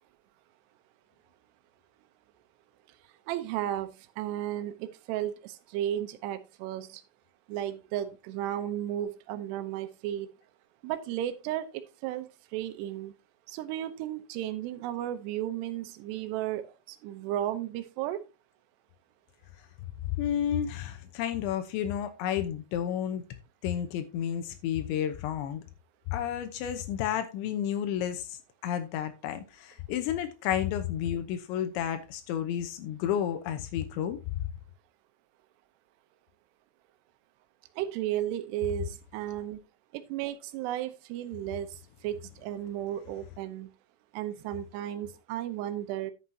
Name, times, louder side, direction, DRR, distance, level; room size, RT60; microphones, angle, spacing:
voice 1, 3.3-7.0 7.5-10.3 10.8-13.1 13.5-18.2 37.8-39.6 39.9-43.7 44.1-46.1, right 12 dB, 75° right, 2.8 m, -34 dB
voice 2, 20.2-23.2 23.6-25.6 26.1-34.5, left 10 dB, 90° left, 3.2 m, -31 dB
11.0 x 7.9 x 2.8 m
omnidirectional pair, 5.2 m